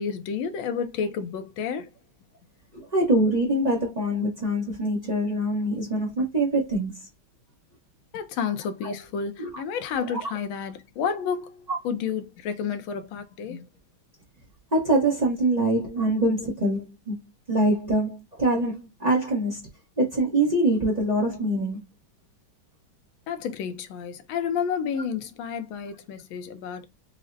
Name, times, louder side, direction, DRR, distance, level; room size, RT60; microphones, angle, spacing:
voice 1, 0.0-1.9 8.1-13.7 23.3-26.9, left 7 dB, 80° left, 1.4 m, -30 dB
voice 2, 2.7-7.1 8.8-8.9 9.4-9.5 10.1-10.2 14.7-17.1 17.5-19.7 20.0-21.8, right 1 dB, 50° right, 0.5 m, -24 dB
6.1 x 2.0 x 2.5 m
omnidirectional pair, 2.3 m